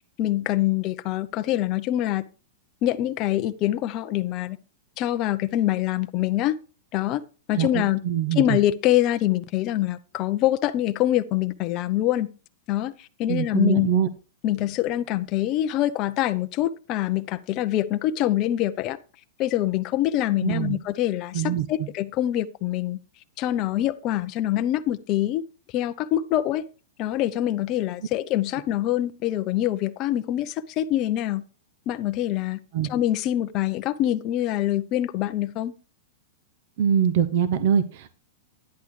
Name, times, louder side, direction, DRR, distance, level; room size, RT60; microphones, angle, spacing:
voice 1, 0.2-2.2 2.8-4.6 5.0-6.6 6.9-7.2 7.5-8.0 8.3-12.3 12.7-13.9 14.4-19.0 19.4-21.4 21.7-23.0 23.4-25.4 25.7-26.6 27.0-31.4 31.9-32.6 32.9-35.7, left 13 dB, 25° left, 0.6 m, -25 dB
voice 2, 7.5-8.6 13.3-14.1 20.4-20.8 21.3-21.9 32.7-32.9 36.8-38.1, right 8 dB, 45° right, 0.7 m, -23 dB
10.5 x 10.0 x 3.2 m
supercardioid pair, 175°, 0 cm